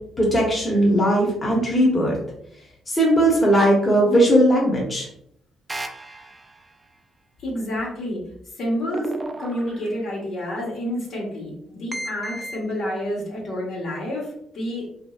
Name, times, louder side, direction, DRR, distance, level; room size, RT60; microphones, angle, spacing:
voice 1, 0.2-2.2 2.9-5.1, right 1 dB, 20° left, -3 dB, 0.9 m, -18 dB
sound 1, 5.7-6.7 8.9-10.1 11.9-12.6, right 1 dB, 15° right, 0.4 m, -33 dB
voice 2, 7.4-8.2 8.6-9.1 9.4-14.8, equal, 65° left, -3 dB, 1.3 m, -29 dB
3.0 x 2.7 x 2.4 m, 0.72 s
cardioid pair, 90°, 0 cm